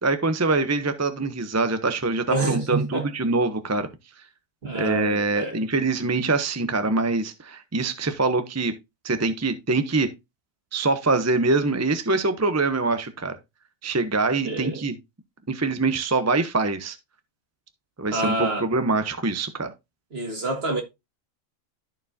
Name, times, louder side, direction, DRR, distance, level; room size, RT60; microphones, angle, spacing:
voice 1, 0.0-3.9 4.7-8.7 9.0-10.1 10.7-13.3 13.8-14.9 15.5-17.0 18.0-19.7, right 3 dB, 20° right, 0.5 m, -24 dB
voice 2, 2.3-3.1 4.6-5.6 14.4-14.8 18.1-18.7 20.1-20.8, right 2 dB, 50° right, 2.2 m, -27 dB
13.5 x 4.6 x 2.7 m
omnidirectional pair, 1.4 m